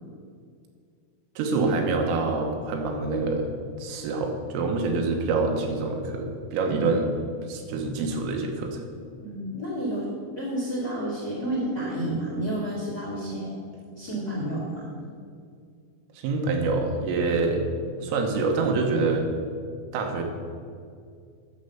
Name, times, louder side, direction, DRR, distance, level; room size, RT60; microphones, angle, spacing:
voice 1, 1.4-3.5 3.8-7.1 7.5-8.9 16.2-17.6 18.0-19.3 19.9-20.2, right 3 dB, 85° right, 2 dB, 3.7 m, -26 dB
voice 2, 9.2-13.6 13.9-14.9, right 1 dB, 30° left, -4 dB, 1.8 m, -30 dB
10.0 x 6.8 x 7.2 m, 2.3 s
omnidirectional pair, 5.8 m